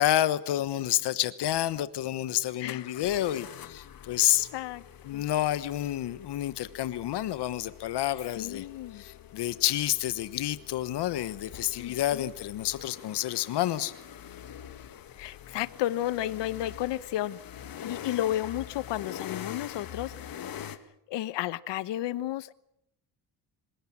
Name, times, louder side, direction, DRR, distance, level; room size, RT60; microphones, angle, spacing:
voice 1, 0.0-4.5 5.0-8.7 8.9-13.9, left 13 dB, 75° left, 15 dB, 1.2 m, -29 dB
sound 1, 2.7-20.8, left 9 dB, 55° left, 1.9 m, -45 dB
voice 2, 4.5-4.8 5.1-5.2 8.4-9.0 11.8-12.3 15.1-17.4 17.8-20.8 21.1-22.5, left 13 dB, 90° left, 17 dB, 1.1 m, -33 dB
26.5 x 17.5 x 8.7 m, 0.76 s
cardioid pair, 145°, 41 cm